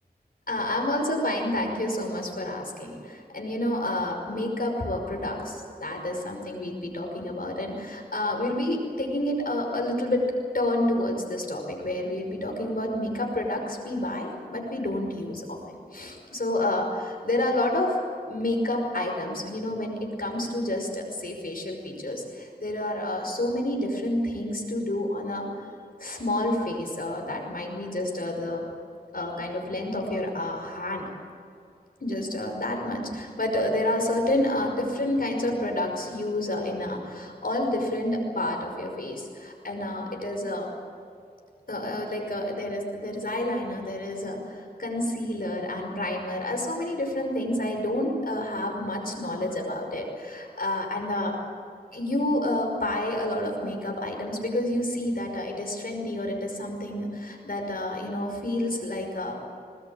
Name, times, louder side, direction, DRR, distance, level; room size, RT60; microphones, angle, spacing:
voice 1, 0.5-15.6 15.9-18.0 18.3-25.5 26.0-28.7 29.1-31.0 32.0-40.7 41.7-51.4 51.9-59.4, left 1 dB, 60° left, 1 dB, 5.5 m, -29 dB
20.5 x 20.0 x 8.8 m, 2.4 s
wide cardioid pair, 60°, 16 cm